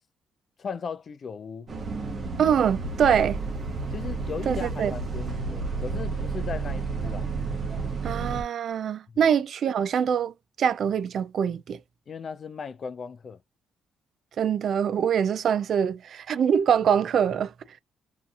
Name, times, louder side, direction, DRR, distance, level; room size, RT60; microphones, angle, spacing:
voice 1, 0.6-1.7 3.9-7.3 9.1-9.3 12.1-13.4, left 6 dB, 50° left, 0.3 m, -37 dB
Bus, 1.7-8.4, right 4 dB, 45° right, 0.9 m, -31 dB
voice 2, 2.4-3.4 4.5-4.9 8.0-10.3 10.6-11.8 14.4-17.5, right 8 dB, 60° right, 0.3 m, -24 dB
2.7 x 2.5 x 2.4 m
cardioid pair, 90°, 0 cm